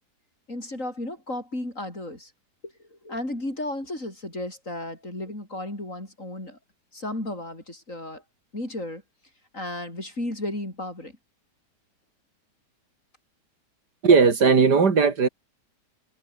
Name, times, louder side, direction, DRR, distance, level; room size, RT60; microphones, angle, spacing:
voice 1, 0.5-2.3 2.6-6.6 6.9-8.2 8.5-9.0 9.5-11.2, left 1 dB, 45° left, 8.7 m, -34 dB
voice 2, 14.0-15.3, right 5 dB, 75° right, 3.0 m, -17 dB
omnidirectional pair, 1.8 m